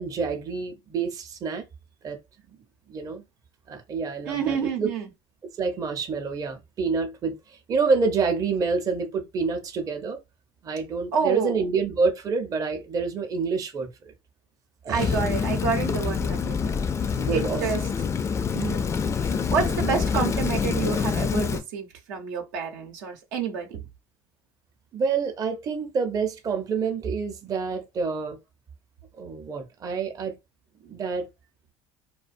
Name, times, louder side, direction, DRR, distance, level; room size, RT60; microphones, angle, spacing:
voice 1, 0.0-1.6 2.0-2.2 2.5-2.6 2.9-3.2 3.7-4.9 5.6-10.2 10.6-14.1 14.8-15.1 17.1-17.8 24.9-28.4 29.2-30.3 30.8-31.3, right 5 dB, 35° right, 0.6 m, -27 dB
voice 2, 4.2-5.1 11.1-11.6 14.9-16.9 17.3-17.8 18.5-23.9, right 6 dB, 90° right, 0.7 m, -29 dB
Rain, 15.0-21.6, left 6 dB, 30° left, 0.3 m, -26 dB
2.3 x 2.2 x 2.5 m
supercardioid pair, 95°, 10 cm